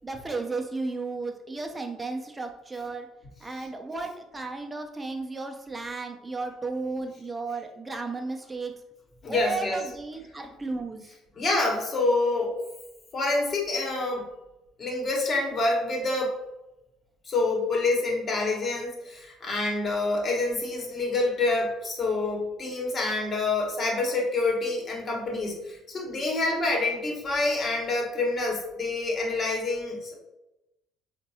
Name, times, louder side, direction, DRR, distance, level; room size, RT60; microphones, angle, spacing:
voice 1, 0.0-3.1 3.4-8.7 9.3-11.1, right 3 dB, 20° right, 3 dB, 0.7 m, -34 dB
voice 2, 9.2-9.8 11.4-12.6 13.1-14.3 14.8-16.3 17.3-30.1, left 2 dB, 45° left, -1 dB, 1.3 m, -27 dB
4.4 x 2.5 x 2.8 m, 0.94 s
hypercardioid pair, 65°, 0 cm